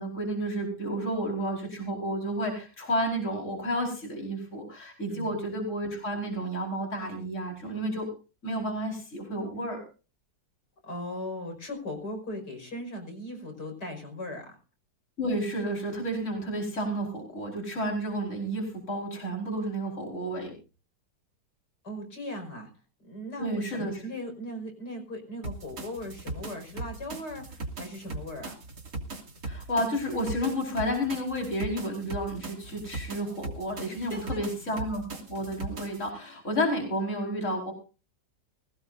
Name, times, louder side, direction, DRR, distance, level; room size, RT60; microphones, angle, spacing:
voice 1, 0.0-8.1 8.4-9.8 15.2-20.5 23.4-24.0 29.4-35.0 35.3-37.7, equal, 40° left, 1 dB, 5.1 m, -31 dB
voice 2, 10.8-14.6 21.8-22.7 23.0-28.6 33.9-34.5, left 1 dB, 65° left, 4 dB, 6.3 m, -38 dB
sound 1, 25.4-36.1, right 2 dB, 60° right, 3.4 m, -39 dB
22.0 x 18.0 x 2.6 m, 0.34 s
omnidirectional pair, 1.9 m